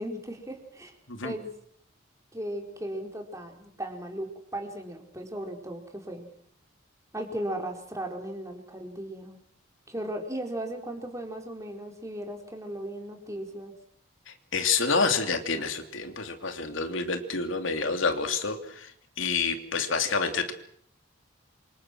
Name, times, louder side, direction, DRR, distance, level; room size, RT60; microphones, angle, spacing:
voice 1, 0.0-0.9 1.2-1.5 2.3-6.3 7.1-9.4 9.9-13.7, right 1 dB, 15° right, 3 dB, 4.6 m, -36 dB
voice 2, 14.5-18.9 19.2-20.5, left 4 dB, 70° left, 6 dB, 3.0 m, -28 dB
28.5 x 26.0 x 6.3 m, 0.64 s
head